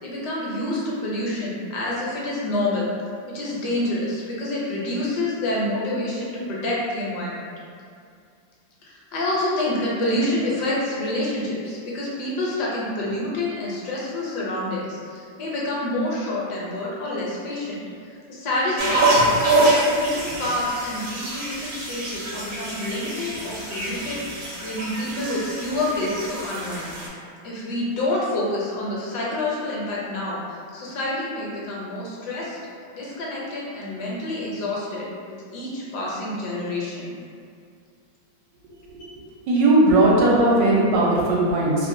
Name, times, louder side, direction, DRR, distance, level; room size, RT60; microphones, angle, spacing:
voice 1, 0.0-2.9 3.3-7.4 8.8-19.4 20.0-26.9 27.4-32.6 32.9-35.1 35.5-37.1, left 1 dB, 75° left, -5 dB, 1.1 m, -28 dB
sound 1, 18.8-27.1, right 1 dB, 65° right, 1.1 m, -25 dB
voice 2, 39.5-41.9, right 2 dB, 80° right, -5 dB, 1.3 m, -18 dB
3.0 x 2.1 x 2.5 m, 2.3 s
omnidirectional pair, 2.0 m